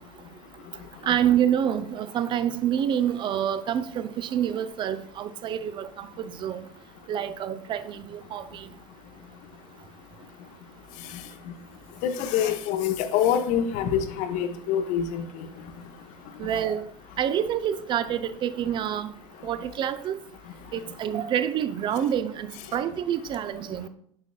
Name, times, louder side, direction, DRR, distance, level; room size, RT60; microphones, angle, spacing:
voice 1, 1.0-6.6 7.1-8.7 16.4-16.8 17.2-19.1 19.4-20.2 20.7-23.9, right 9 dB, 25° right, 0.4 m, -27 dB
voice 2, 12.0-15.5, left 9 dB, 45° left, 0.7 m, -25 dB
7.5 x 5.9 x 2.3 m
figure-of-eight pair, 80°, 18 cm